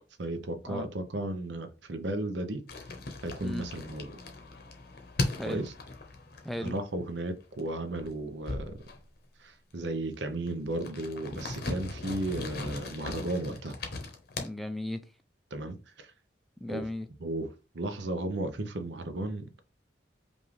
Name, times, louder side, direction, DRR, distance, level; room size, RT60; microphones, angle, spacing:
voice 1, 0.2-2.6 3.2-4.1 5.5-5.7 6.6-8.8 9.4-13.7 15.5-16.1 16.7-16.9 17.2-17.5 17.7-19.4, right 1 dB, 75° right, 0.8 m, -34 dB
sound 1, 2.7-7.2 7.4-7.7 8.0-9.2 9.9-10.0 10.3-14.5, left 2 dB, 60° left, 0.9 m, -38 dB
voice 2, 5.3-5.7 6.4-6.8 14.4-15.0 16.6-17.1, left 1 dB, ahead, 0.3 m, -36 dB
5.3 x 2.5 x 3.2 m
head